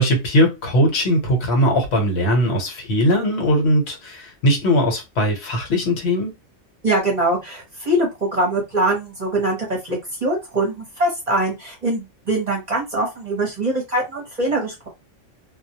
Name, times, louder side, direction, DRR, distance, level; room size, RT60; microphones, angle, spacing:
voice 1, 0.0-6.3, equal, 65° left, 1.0 m, -19 dB
voice 2, 6.8-14.9, right 1 dB, 40° right, 0.8 m, -23 dB
2.3 x 2.0 x 2.7 m
omnidirectional pair, 1.3 m